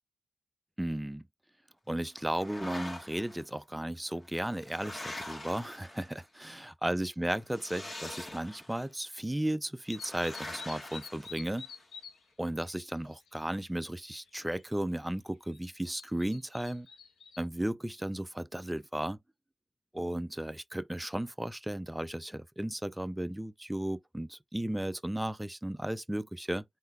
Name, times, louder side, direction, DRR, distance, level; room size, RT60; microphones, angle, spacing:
voice 1, 0.8-1.2 1.9-11.7 12.4-16.9 17.4-19.2 19.9-26.6, right 1 dB, 10° right, 0.4 m, -35 dB
sound 1, 2.2-3.4 4.2-6.4 7.5-8.9 9.9-11.8, left 1 dB, 30° left, 1.4 m, -44 dB
sound 2, 9.9-12.2 12.5-13.7 14.0-14.6 15.5-17.4, left 6 dB, 90° left, 1.0 m, -48 dB
3.9 x 2.7 x 3.6 m
cardioid pair, 75°, 0 cm